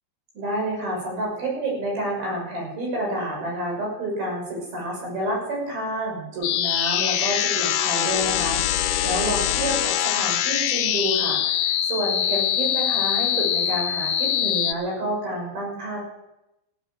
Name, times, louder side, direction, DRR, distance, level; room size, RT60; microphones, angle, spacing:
voice 1, 0.3-16.0, right 1 dB, 50° right, -1 dB, 8.1 m, -29 dB
sound 1, 6.4-14.7, left 11 dB, 85° left, 3.6 m, -23 dB
15.0 x 12.5 x 7.9 m, 0.89 s
omnidirectional pair, 5.7 m